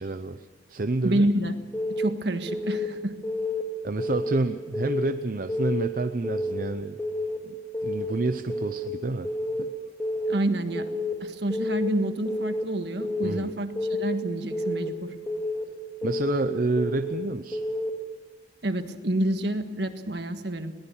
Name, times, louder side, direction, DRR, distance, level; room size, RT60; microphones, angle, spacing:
voice 1, 0.0-1.3 3.8-7.0 7.4-7.6 7.8-9.3 9.6-9.7 13.2-13.5 16.0-17.6, right 2 dB, 50° right, 9 dB, 0.7 m, -29 dB
voice 2, 1.0-1.6 1.9-3.1 10.3-10.9 11.2-13.7 14.0-15.1 18.6-20.7, right 1 dB, 65° right, 7 dB, 1.6 m, -28 dB
Keyboard (musical) / Alarm, 1.7-2.1 2.5-2.9 3.2-3.6 4.0-4.4 4.7-5.1 5.5-5.9 6.2-6.6 7.0-7.4 7.7-8.1 8.5-8.9 9.2-9.6 10.0-10.4 10.8-11.1 11.5-11.9 12.3-12.6 13.0-13.4 13.8-14.1 14.5-14.9 15.3-15.6 16.0-16.4 16.8-17.2 17.5-17.9, left 1 dB, 15° left, 2.3 m, -29 dB
21.5 x 19.5 x 7.2 m, 1.3 s
head